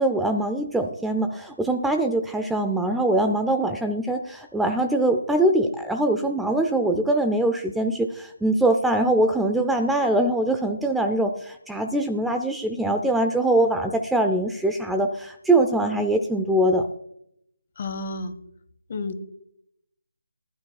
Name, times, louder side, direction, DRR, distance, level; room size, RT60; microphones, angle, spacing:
voice 1, 0.0-16.9, right 1 dB, 5° right, 5 dB, 0.5 m, -23 dB
voice 2, 17.8-18.3 18.9-19.2, left 3 dB, 40° left, 11 dB, 1.4 m, -31 dB
19.5 x 11.5 x 2.3 m, 0.74 s
figure-of-eight pair, 160°, 0 cm